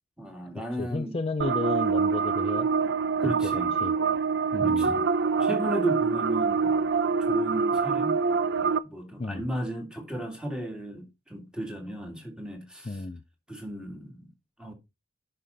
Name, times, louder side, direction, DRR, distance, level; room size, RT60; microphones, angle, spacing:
voice 1, 0.2-1.2 3.2-3.7 4.6-5.0 5.4-6.8 7.2-8.2 8.6-13.0 13.5-14.3 14.6-14.7, equal, 5° right, 2.3 m, -34 dB
voice 2, 0.8-2.7 3.2-4.0 4.5-4.9 9.2-9.5 12.8-13.2, left 3 dB, 30° left, 0.4 m, -33 dB
sound 1, 1.4-8.8, right 5 dB, 55° right, 0.5 m, -25 dB
11.0 x 5.4 x 3.9 m
head